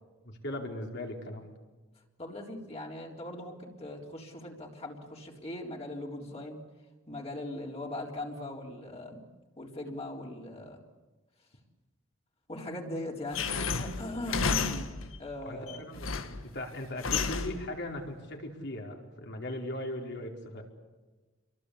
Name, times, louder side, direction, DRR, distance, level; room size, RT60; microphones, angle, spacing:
voice 1, 0.2-1.5 15.5-20.6, left 1 dB, 55° left, 2 dB, 4.6 m, -39 dB
voice 2, 2.2-6.6 7.1-9.2 9.6-10.8 12.5-14.9 15.2-15.8, left 1 dB, 30° left, -1 dB, 3.8 m, -40 dB
sound 1, 13.3-15.2 15.7-16.5 17.0-17.7, left 5 dB, 85° left, 1.7 m, -32 dB
29.0 x 23.0 x 8.5 m, 1.2 s
head